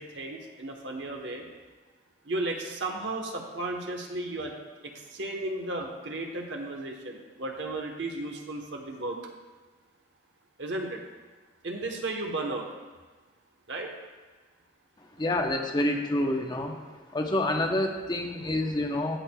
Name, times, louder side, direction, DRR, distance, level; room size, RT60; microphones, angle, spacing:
voice 1, 0.0-1.5 2.2-4.5 4.8-9.2 10.6-11.0 11.6-12.7 13.7-13.9, right 2 dB, 65° right, 2 dB, 1.0 m, -34 dB
voice 2, 15.2-16.8 17.1-19.2, left 1 dB, 25° left, 3 dB, 0.8 m, -28 dB
17.0 x 6.3 x 2.3 m, 1.3 s
head